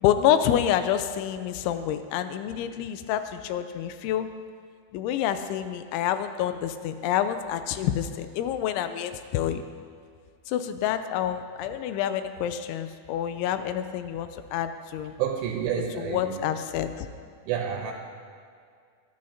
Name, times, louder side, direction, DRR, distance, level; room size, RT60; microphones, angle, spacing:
voice 1, 0.0-4.3 4.9-9.6 10.5-15.1 16.0-17.1, left 10 dB, 85° left, 9 dB, 2.8 m, -27 dB
voice 2, 15.2-16.4 17.4-17.9, right 8 dB, 80° right, 2 dB, 3.2 m, -29 dB
21.5 x 13.0 x 2.8 m, 2.2 s
omnidirectional pair, 5.8 m